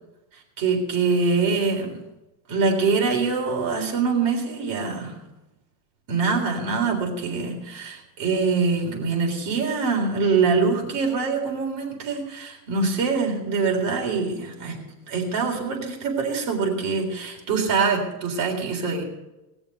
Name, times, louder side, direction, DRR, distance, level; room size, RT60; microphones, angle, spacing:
voice 1, 0.6-2.0 2.5-5.2 6.1-14.8 15.1-19.0, right 4 dB, 45° right, 1 dB, 3.8 m, -24 dB
19.5 x 6.9 x 6.7 m, 0.98 s
supercardioid pair, 150°, 48 cm